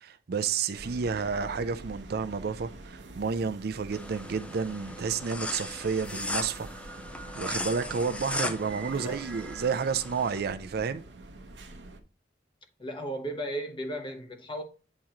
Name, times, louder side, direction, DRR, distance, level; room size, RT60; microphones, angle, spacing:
voice 1, 0.0-6.7 7.4-11.0, right 5 dB, 60° right, 0.4 m, -31 dB
sound 1, 0.7-12.0, right 2 dB, 80° right, 0.8 m, -46 dB
sound 2, 3.9-10.4, left 2 dB, 5° left, 0.5 m, -37 dB
Scratching (performance technique), 7.1-9.6, right 1 dB, 20° right, 1.0 m, -49 dB
voice 2, 12.8-14.6, right 1 dB, 30° left, 1.0 m, -35 dB
8.5 x 3.0 x 3.7 m
head